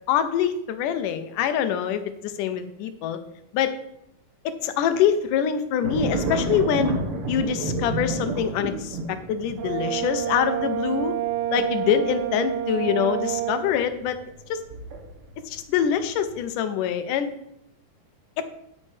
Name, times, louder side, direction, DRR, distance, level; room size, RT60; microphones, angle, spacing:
voice 1, 0.1-3.2 3.5-3.7 4.5-7.0 7.3-11.1 11.5-14.2 14.5-14.6 15.5-17.3 18.4-18.5, left 8 dB, 80° left, 10 dB, 2.3 m, -25 dB
sound 1, 5.8-15.5 15.9-16.4, right 2 dB, 90° right, 3.0 m, -31 dB
Brass instrument, 9.6-13.7, right 11 dB, 70° right, 2.5 m, -28 dB
9.8 x 9.8 x 3.3 m, 0.78 s
omnidirectional pair, 3.7 m